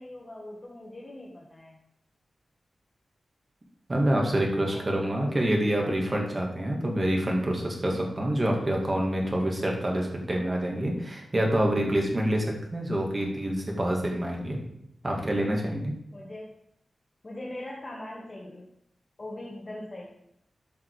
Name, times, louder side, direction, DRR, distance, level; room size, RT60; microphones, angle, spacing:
voice 1, 0.0-1.8 4.6-5.4 16.1-16.5 17.2-18.7 19.2-20.1, left 1 dB, 30° left, -3 dB, 1.6 m, -41 dB
voice 2, 3.9-14.6 15.0-15.9, right 1 dB, 25° right, 0 dB, 2.5 m, -27 dB
13.0 x 5.9 x 5.0 m, 0.77 s
wide cardioid pair, 150°, 0 cm